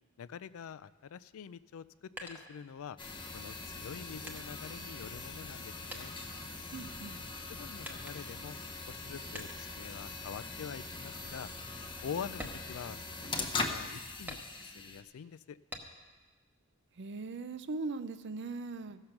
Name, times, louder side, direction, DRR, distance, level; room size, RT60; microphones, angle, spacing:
voice 1, 0.2-3.0 3.3-6.1 7.5-8.6 8.9-11.5 12.0-15.6, left 7 dB, 70° left, 16 dB, 0.4 m, -45 dB
sound 1, 1.7-3.1 3.8-5.6 5.9-7.1 7.8-8.5 9.4-9.8 10.3-10.5 11.0-11.1 11.5-11.7 12.3-13.5 14.3-14.9 15.7-16.2 16.6-17.5, equal, 10° right, 0.9 m, -48 dB
sound 2, 3.0-15.0, left 3 dB, 25° left, 0.8 m, -41 dB
voice 2, 6.7-7.2 17.0-19.0, right 3 dB, 55° right, 13 dB, 0.5 m, -39 dB
15.0 x 6.6 x 5.8 m, 1.3 s
head